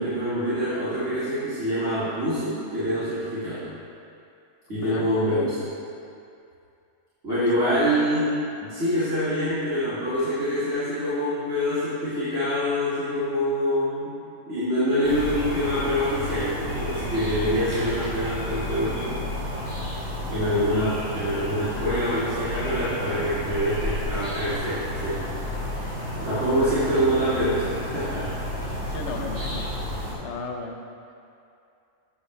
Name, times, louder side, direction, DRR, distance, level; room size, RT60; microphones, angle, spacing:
voice 1, 0.0-3.7 4.7-5.6 7.2-8.3 8.6-14.2 14.5-19.2 20.3-25.3 26.2-28.3, equal, 50° right, -15 dB, 2.2 m, -25 dB
voice 2, 4.8-5.5 7.3-8.0 28.9-29.6 30.2-30.8, left 3 dB, 60° left, 2 dB, 0.9 m, -36 dB
sound 1, 15.0-30.2, left 1 dB, 80° right, 2.3 m, -31 dB
8.3 x 6.1 x 3.1 m, 2.5 s
omnidirectional pair, 1.4 m